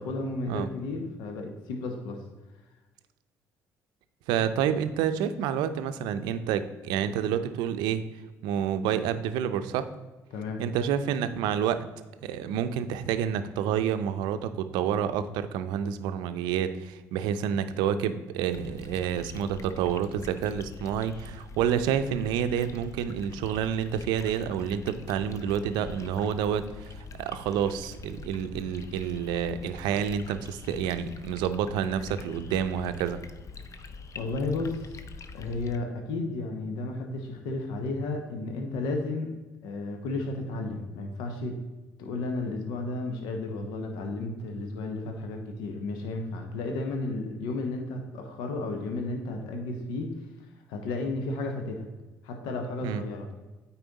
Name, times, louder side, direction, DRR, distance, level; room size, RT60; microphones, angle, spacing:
voice 1, 0.0-2.2 10.3-10.6 34.1-35.0 35.3-39.3 39.6-41.6 42.0-50.1 50.7-51.9 52.2-53.3, left 2 dB, 75° left, 4 dB, 0.9 m, -33 dB
voice 2, 4.3-8.0 8.4-9.9 10.6-11.8 12.2-33.2 52.8-53.0, right 8 dB, 75° right, 11 dB, 0.5 m, -29 dB
sound 1, 18.5-35.8, left 4 dB, 45° left, 0.7 m, -44 dB
9.1 x 4.3 x 4.0 m, 1.2 s
hypercardioid pair, 60°, 7 cm